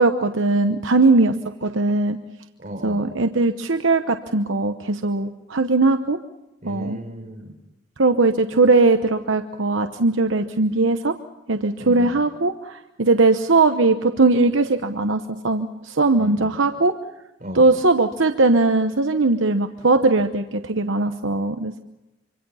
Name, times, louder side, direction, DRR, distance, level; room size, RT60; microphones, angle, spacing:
voice 1, 0.0-1.3 1.6-2.2 2.8-6.2 6.6-7.0 8.0-11.1 11.5-16.9 17.5-21.8, right 3 dB, 70° right, 7 dB, 1.0 m, -19 dB
voice 2, 2.6-3.1 6.6-7.5 11.8-12.2 16.2-16.5 17.4-17.7, equal, 35° right, 2 dB, 4.4 m, -35 dB
26.0 x 25.0 x 5.7 m, 0.97 s
head